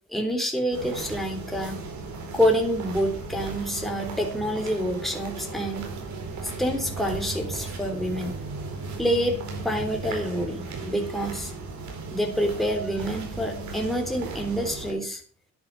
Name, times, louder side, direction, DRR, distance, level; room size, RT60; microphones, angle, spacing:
voice 1, 0.1-1.8 2.3-5.9 6.4-8.3 9.0-9.4 9.6-11.5 12.1-15.2, equal, ahead, 2 dB, 3.4 m, -27 dB
sound 1, 0.7-14.9, right 3 dB, 70° right, 4.5 m, -36 dB
10.5 x 9.7 x 6.4 m, 0.43 s
cardioid pair, 90°, 30 cm